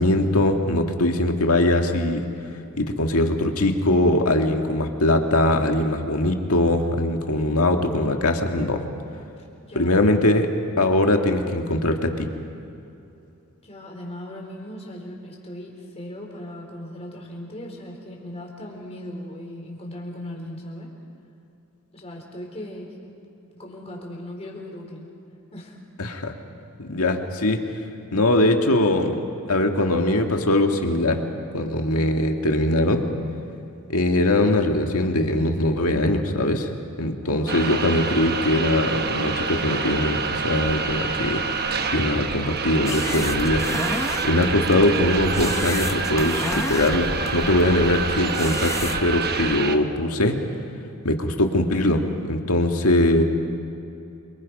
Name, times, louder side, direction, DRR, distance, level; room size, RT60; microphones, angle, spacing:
voice 1, 0.0-2.2 2.8-8.8 9.8-10.5 10.8-12.3 26.0-26.3 26.8-27.6 28.1-29.2 29.5-31.2 31.5-33.1 33.9-36.7 37.0-43.6 44.2-50.4 51.0-53.2, left 1 dB, 75° left, 4 dB, 2.0 m, -21 dB
voice 2, 9.3-10.0 13.6-20.9 21.9-23.1 23.4-25.1 25.5-25.8 37.1-37.6, left 1 dB, 30° left, -1 dB, 4.3 m, -38 dB
sound 1, 37.5-49.8, right 4 dB, 45° right, 1.1 m, -27 dB
sound 2, 42.9-49.0, left 2 dB, 15° left, 0.8 m, -32 dB
28.0 x 25.0 x 5.4 m, 2.7 s
head